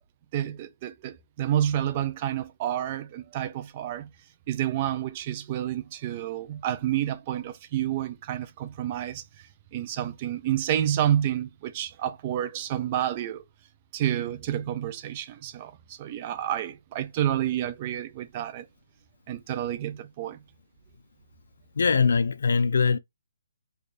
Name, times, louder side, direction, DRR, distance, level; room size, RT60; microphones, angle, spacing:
voice 1, 0.3-4.1 4.5-13.4 13.9-18.7 19.3-20.4, right 11 dB, 25° right, 0.4 m, -29 dB
voice 2, 21.8-23.0, left 5 dB, 65° left, 0.4 m, -22 dB
4.8 x 2.4 x 2.5 m
hypercardioid pair, 165°, 0 cm